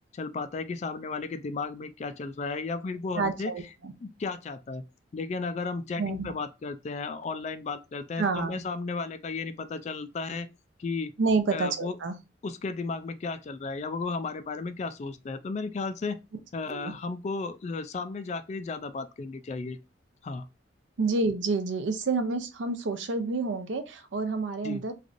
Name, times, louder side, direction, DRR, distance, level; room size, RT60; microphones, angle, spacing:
voice 1, 0.1-3.5 4.0-4.8 5.1-10.5 10.8-11.1 11.5-12.0 12.4-16.2 16.5-19.8 20.2-20.5 24.6-24.8, left 4 dB, 40° left, 0.3 m, -34 dB
voice 2, 3.1-3.9 6.0-6.3 8.2-8.6 11.2-12.1 16.7-16.9 21.0-24.9, right 3 dB, 80° right, 0.5 m, -28 dB
3.2 x 2.5 x 2.5 m
head